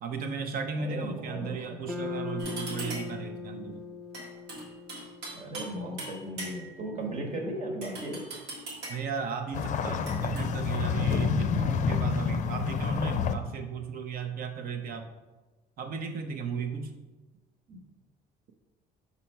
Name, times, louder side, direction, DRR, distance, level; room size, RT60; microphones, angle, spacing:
voice 1, 0.0-3.8 8.9-15.1 15.8-16.9, right 5 dB, 60° right, 6 dB, 0.8 m, -35 dB
voice 2, 0.7-1.9 5.3-8.2 17.7-17.8, right 1 dB, 45° right, 1 dB, 1.5 m, -36 dB
sound 1, 1.9-6.2, left 3 dB, 5° right, 0.8 m, -39 dB
sound 2, 2.4-3.2 4.1-5.7 6.0-6.9 7.8-9.1 10.1-10.5, right 2 dB, 80° right, 1.8 m, -40 dB
sound 3, 9.5-13.3, left 5 dB, 45° left, 0.5 m, -28 dB
4.4 x 4.2 x 5.6 m, 1.2 s
cardioid pair, 110°, 17 cm